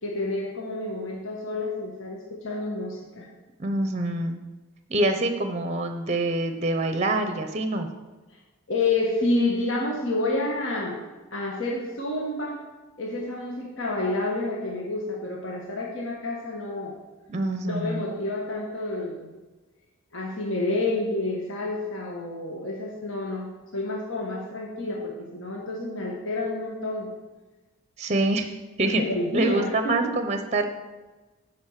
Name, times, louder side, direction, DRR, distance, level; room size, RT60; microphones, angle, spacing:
voice 1, 0.0-3.3 8.7-11.0 11.3-12.6 13.0-16.9 17.6-19.3 20.1-27.1 28.8-30.2, left 2 dB, 60° left, -2 dB, 1.3 m, -29 dB
voice 2, 3.6-4.4 4.9-7.9 17.3-18.0 28.0-28.5 28.8-29.0 29.3-30.7, right 2 dB, 30° right, 7 dB, 0.6 m, -25 dB
8.8 x 5.1 x 6.5 m, 1.2 s
head